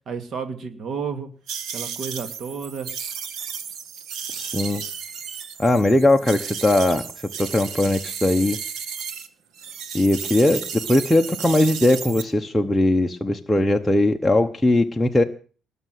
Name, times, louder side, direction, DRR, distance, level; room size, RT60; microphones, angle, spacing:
voice 1, 0.1-1.3 1.7-2.9, right 6 dB, 45° right, 7 dB, 2.5 m, -31 dB
sound 1, 1.5-9.3 9.6-12.2, right 7 dB, 70° right, 1.9 m, -33 dB
voice 2, 4.3-4.8 5.6-7.0 7.4-8.6 9.9-10.6 10.9-15.2, left 1 dB, 5° left, 2 dB, 1.0 m, -19 dB
20.0 x 6.8 x 9.3 m, 0.40 s
cardioid pair, 150°, 0 cm